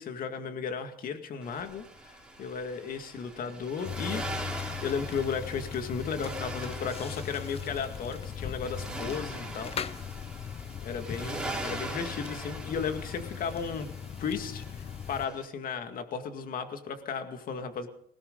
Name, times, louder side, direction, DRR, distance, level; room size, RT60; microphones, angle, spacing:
voice 1, 0.0-4.3 4.8-9.7 10.8-13.9 14.2-17.9, left 6 dB, 55° left, 7 dB, 2.2 m, -35 dB
Accelerating revving vroom, 1.4-15.4, right 2 dB, 5° right, 4.3 m, -42 dB
sound 1, 3.8-15.3, left 8 dB, 35° left, 0.7 m, -39 dB
20.0 x 17.0 x 4.0 m, 0.68 s
cardioid pair, 110°, 17 cm